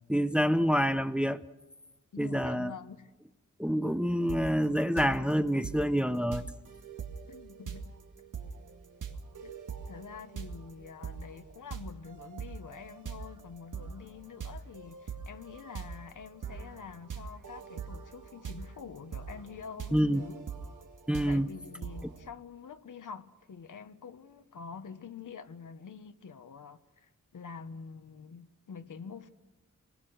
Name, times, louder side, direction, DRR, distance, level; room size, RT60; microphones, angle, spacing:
voice 1, 0.1-1.4 2.2-2.7 3.6-6.5 19.9-20.2 21.1-21.5, equal, 5° right, 0.7 m, -27 dB
voice 2, 2.1-3.1 7.3-7.9 9.4-9.5 9.9-20.4 21.3-29.3, left 6 dB, 80° left, 1.3 m, -46 dB
sound 1, 4.3-4.6 5.0-22.3, right 6 dB, 80° right, 2.1 m, -43 dB
27.0 x 20.5 x 6.4 m
wide cardioid pair, 125°, 31 cm